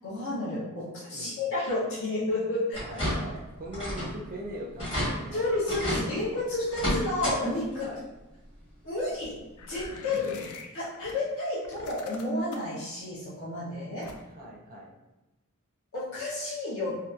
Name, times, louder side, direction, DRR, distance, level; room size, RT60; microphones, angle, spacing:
voice 1, 0.0-2.8 5.3-7.9 8.8-9.4 9.6-10.3 10.7-14.1 15.9-16.9, left 2 dB, 60° left, -9 dB, 0.8 m, -31 dB
sound 1, 2.7-3.4 3.7-4.2 4.5-4.6 4.8-5.1 5.7-6.0 6.7-7.4 7.7-7.8 9.2-9.3 9.8-9.9, equal, 25° left, 1.1 m, -30 dB
voice 2, 2.8-5.4 7.8-8.0 10.3-10.4 14.3-15.0, equal, 40° right, -1 dB, 0.4 m, -41 dB
sound 2, 9.6-11.1 11.6-12.8 14.0-14.5, left 4 dB, 80° left, 0.4 m, -45 dB
2.7 x 2.4 x 2.4 m, 1.0 s
head